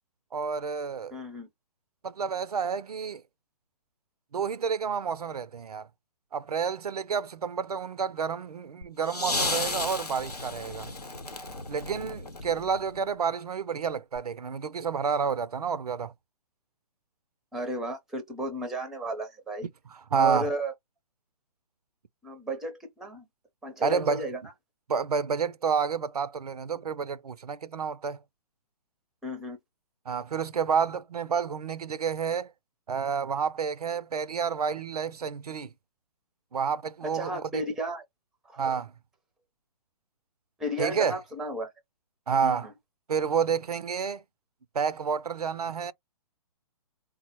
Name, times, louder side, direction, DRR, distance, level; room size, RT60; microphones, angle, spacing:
voice 1, 0.3-1.2 2.0-3.2 4.3-5.9 6.3-10.9 11.7-16.1 19.9-20.5 23.8-24.2 24.9-28.2 30.1-32.5 32.9-35.7 36.5-37.6 38.6-38.9 40.8-41.2 42.3-42.7 43.1-44.2 44.7-45.9, right 6 dB, 80° right, 0.4 m, -29 dB
voice 2, 1.1-1.5 17.5-19.6 20.1-20.7 22.2-23.2 23.6-24.4 29.2-29.6 37.0-38.0 38.4-38.8 40.6-41.7 42.4-42.7, right 1 dB, ahead, 0.5 m, -33 dB
sound 1, 8.8-13.0 14.2-14.3, left 3 dB, 85° left, 0.9 m, -34 dB
3.7 x 2.0 x 2.8 m
figure-of-eight pair, 130°, 20 cm